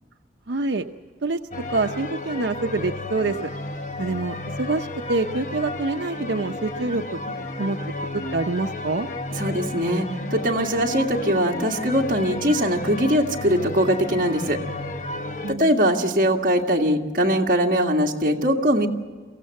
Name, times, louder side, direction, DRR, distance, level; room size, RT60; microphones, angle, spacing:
voice 1, 0.5-0.8 1.2-1.4 1.7-3.5 4.0-7.8 8.1-9.1 15.4-15.7, right 3 dB, 85° right, 5 dB, 0.7 m, -26 dB
sound 1, 1.5-15.5, left 2 dB, 45° left, 1.0 m, -32 dB
voice 2, 9.4-10.1 10.3-14.6 15.5-18.9, equal, 50° right, 0 dB, 1.9 m, -21 dB
23.5 x 16.0 x 7.8 m, 1.5 s
head